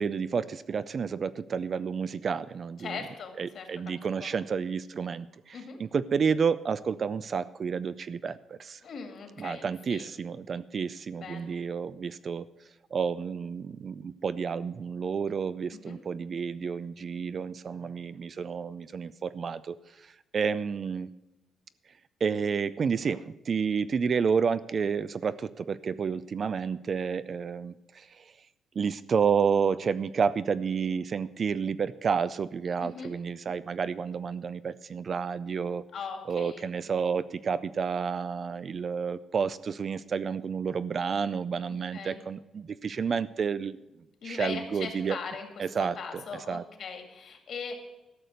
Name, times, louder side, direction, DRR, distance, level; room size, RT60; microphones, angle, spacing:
voice 1, 0.0-3.0 3.4-8.8 9.4-12.5 12.9-19.8 20.0-21.1 22.2-28.3 28.8-35.8 36.3-43.8 44.2-45.2 45.6-46.2 46.5-46.6, right 6 dB, 35° right, 15 dB, 0.3 m, -30 dB
voice 2, 2.8-3.7 4.2-4.3 5.5-5.8 8.8-10.1 11.2-11.5 15.9-16.0 32.8-33.1 35.9-36.6 41.7-42.2 44.2-45.5 45.8-47.7, left 5 dB, 50° left, 5 dB, 2.1 m, -40 dB
13.0 x 6.7 x 7.8 m, 1.0 s
cardioid pair, 175°, 0 cm